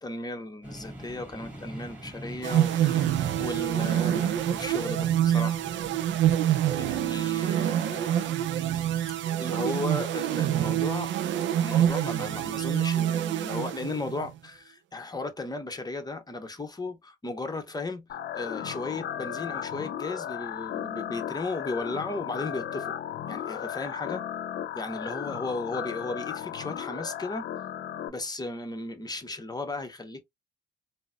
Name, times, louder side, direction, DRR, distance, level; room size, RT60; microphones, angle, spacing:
voice 1, 0.0-5.6 6.5-8.4 9.3-11.1 11.6-18.0 18.3-22.9 23.3-24.2 24.7-27.5 28.1-30.2, left 2 dB, 20° left, 0.8 m, -35 dB
sound 1, 0.6-12.4, equal, 10° right, 1.6 m, -45 dB
sound 2, 2.4-14.3, right 11 dB, 70° right, 0.4 m, -26 dB
sound 3, 18.1-28.1, left 9 dB, 60° left, 0.5 m, -35 dB
3.9 x 2.1 x 2.2 m
cardioid pair, 90°, 20 cm